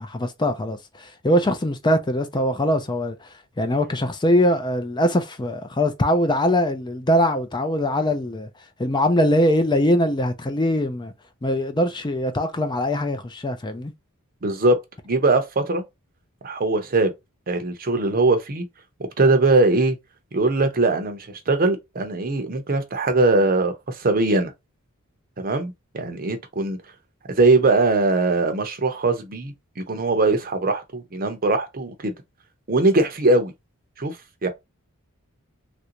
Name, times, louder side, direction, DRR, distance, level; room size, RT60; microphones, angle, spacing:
voice 1, 0.0-3.3 3.6-8.5 8.8-11.1 11.4-13.9, left 1 dB, 20° left, 0.5 m, -22 dB
voice 2, 14.4-14.8 15.0-15.8 16.4-17.1 17.5-18.6 19.2-20.0 20.3-24.5 25.4-26.8 27.4-32.1 32.7-33.5 34.0-34.2 34.4-34.5, right 2 dB, 40° right, 0.7 m, -21 dB
3.3 x 2.5 x 2.9 m
head